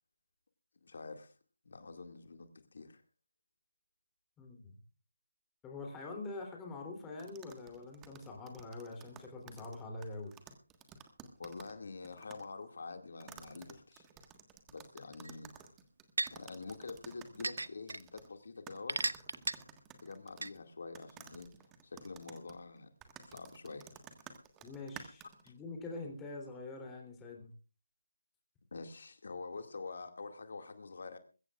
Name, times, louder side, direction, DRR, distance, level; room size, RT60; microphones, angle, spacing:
voice 1, 0.8-1.4 1.6-3.0 11.4-14.1 14.7-15.5 16.3-19.0 20.0-21.5 21.8-22.9 23.2-23.9 25.4-25.5 28.7-31.2, left 4 dB, 55° left, 6 dB, 2.1 m, -46 dB
voice 2, 4.4-4.7 5.6-10.3 24.6-27.5, left 3 dB, 10° left, 1 dB, 3.2 m, -45 dB
sound 1, 7.2-11.8 12.0-12.4 13.2-18.3 18.7-20.6 20.9-25.5, right 8 dB, 10° right, 1.5 m, -54 dB
sound 2, 15.2-15.3 16.2-16.3 17.4-18.0 18.9-19.5 20.4-20.5, right 3 dB, 70° right, 0.9 m, -33 dB
22.0 x 15.0 x 2.4 m, 0.34 s
figure-of-eight pair, 160°, 0 cm